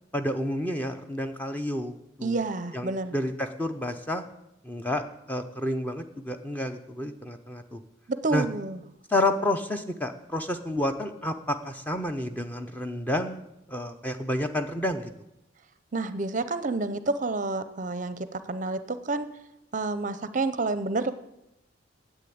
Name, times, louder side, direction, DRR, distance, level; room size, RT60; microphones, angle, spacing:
voice 1, 0.1-1.9 2.2-2.4 2.7-4.2 4.6-5.0 5.3-7.8 8.3-8.4 9.1-13.4 13.7-15.1, left 1 dB, 10° left, 6 dB, 0.7 m, -30 dB
voice 2, 2.2-3.1 8.1-8.8 15.9-19.3 19.7-21.1, right 3 dB, 40° right, 12 dB, 0.6 m, -29 dB
10.0 x 8.3 x 8.6 m, 0.89 s
head